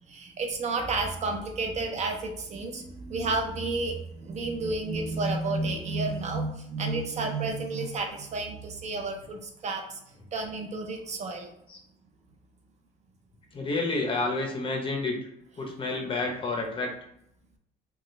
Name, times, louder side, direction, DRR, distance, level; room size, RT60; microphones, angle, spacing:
voice 1, 0.0-10.0 10.3-11.5, right 3 dB, 40° right, 3 dB, 0.5 m, -31 dB
voice 2, 13.5-15.2 15.6-16.9, left 3 dB, 30° left, 1 dB, 0.7 m, -29 dB
2.9 x 2.3 x 3.1 m, 0.75 s
cardioid pair, 110°, 17 cm